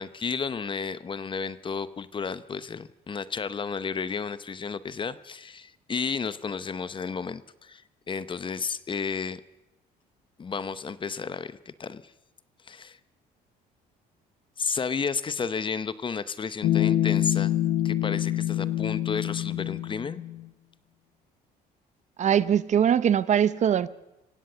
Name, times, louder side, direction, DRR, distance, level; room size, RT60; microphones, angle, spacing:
voice 1, 0.0-7.8 8.1-9.4 10.4-12.1 12.6-13.0 14.6-17.5 17.8-20.2, left 5 dB, 30° left, 0.8 m, -32 dB
sound 1, 16.6-20.5, left 12 dB, 70° left, 1.3 m, -26 dB
voice 2, 22.2-23.9, right 9 dB, 45° right, 0.7 m, -22 dB
25.0 x 16.5 x 6.9 m
cardioid pair, 110°, 17 cm